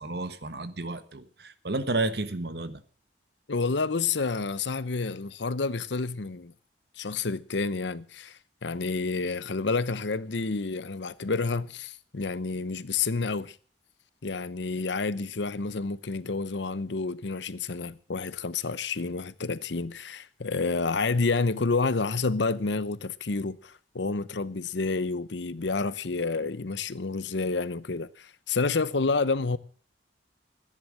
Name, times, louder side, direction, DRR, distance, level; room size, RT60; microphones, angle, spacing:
voice 1, 0.0-2.8, right 2 dB, 60° right, 1.3 m, -31 dB
voice 2, 3.5-6.5 7.0-13.6 14.2-29.6, left 4 dB, 80° left, 0.8 m, -29 dB
14.5 x 10.5 x 7.5 m
head